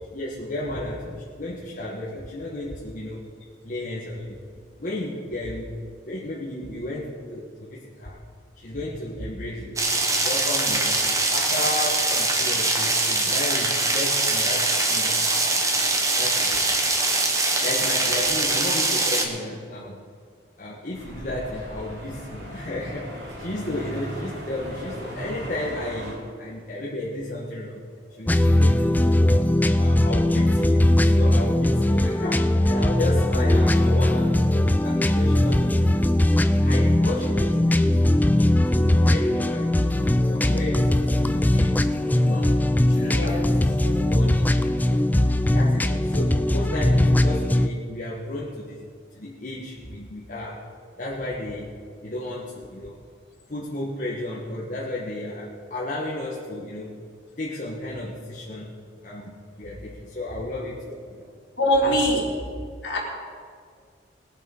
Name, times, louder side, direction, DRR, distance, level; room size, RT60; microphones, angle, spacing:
voice 1, 0.1-3.2 3.6-4.4 4.8-5.8 6.0-8.2 8.6-9.8 10.2-11.0 11.3-15.6 16.2-16.7 17.6-20.0 20.6-27.8 28.2-29.3 29.7-36.0 36.6-38.3 38.7-39.7 40.3-42.6 42.8-43.6 44.1-45.1 45.5-48.9 49.1-50.6 51.0-51.7 52.0-53.0 53.5-57.0 57.4-58.7 59.0-61.3 61.8-62.0, left 1 dB, 45° left, -5 dB, 1.4 m, -33 dB
sound 1, 9.8-19.2, right 2 dB, 15° right, 1.2 m, -23 dB
sound 2, 20.9-26.1, equal, 65° right, 4.3 m, -38 dB
sound 3, 28.3-47.7, left 1 dB, 10° left, 0.4 m, -20 dB
voice 2, 43.1-43.4 43.8-44.1 61.6-62.2 62.8-63.0, equal, 65° left, -4 dB, 3.6 m, -23 dB
20.0 x 7.4 x 5.4 m, 2.1 s
head